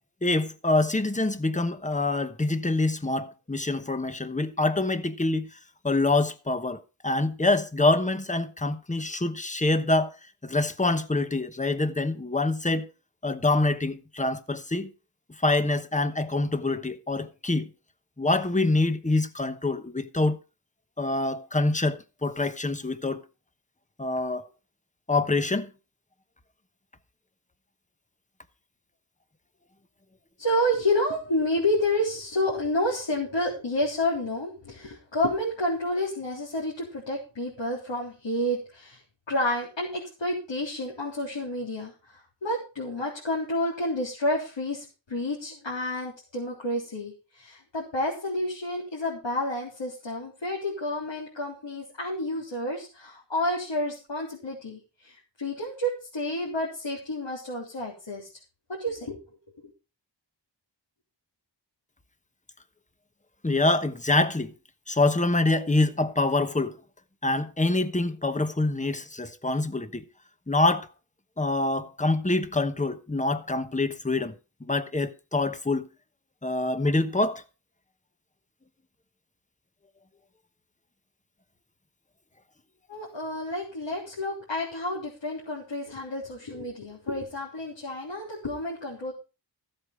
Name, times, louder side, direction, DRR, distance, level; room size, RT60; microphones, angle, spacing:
voice 1, 0.2-5.5 5.8-10.1 10.4-12.9 13.2-14.9 15.4-17.7 18.2-20.4 21.0-23.2 24.0-24.5 25.1-25.7 63.4-64.5 64.9-66.8 67.2-70.0 70.5-70.9 71.4-74.3 74.7-75.9 76.4-77.4, left 2 dB, 15° left, 1.1 m, -25 dB
voice 2, 30.4-39.0 39.3-58.3 58.8-59.2 82.9-89.1, left 1 dB, 80° left, 3.7 m, -30 dB
14.5 x 8.0 x 4.9 m
wide cardioid pair, 80°, 44 cm